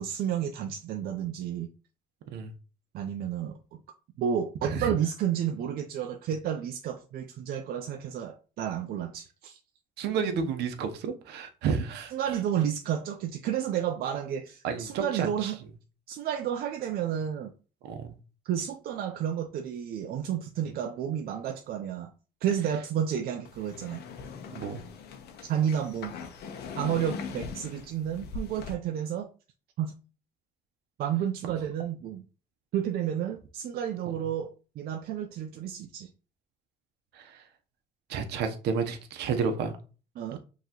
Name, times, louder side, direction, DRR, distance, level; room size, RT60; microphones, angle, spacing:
voice 1, 0.0-1.7 2.9-3.8 4.2-9.6 12.1-15.6 16.1-17.5 18.4-22.1 22.4-24.0 25.5-26.1 26.8-29.3 29.8-30.0 31.0-32.2 32.7-34.5 34.8-36.1 40.2-40.4, right 9 dB, 65° right, 0.5 m, -31 dB
voice 2, 10.0-12.4 14.6-15.5 17.8-18.1 24.5-24.8 37.1-37.4 38.1-39.7, right 6 dB, 80° right, 0.9 m, -31 dB
sound 1, 23.4-28.7, left 5 dB, 75° left, 0.9 m, -41 dB
5.6 x 3.0 x 2.9 m
cardioid pair, 110°, 17 cm